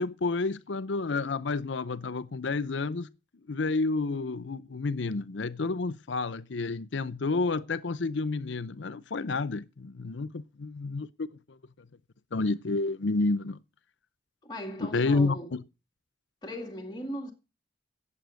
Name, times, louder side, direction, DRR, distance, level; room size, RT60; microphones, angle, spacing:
voice 1, 0.0-3.1 3.5-11.6 12.3-13.6 14.8-15.6, left 3 dB, 80° left, 0.7 m, -30 dB
voice 2, 14.4-15.5 16.4-17.3, equal, 20° left, 2.2 m, -38 dB
17.5 x 7.7 x 6.3 m
head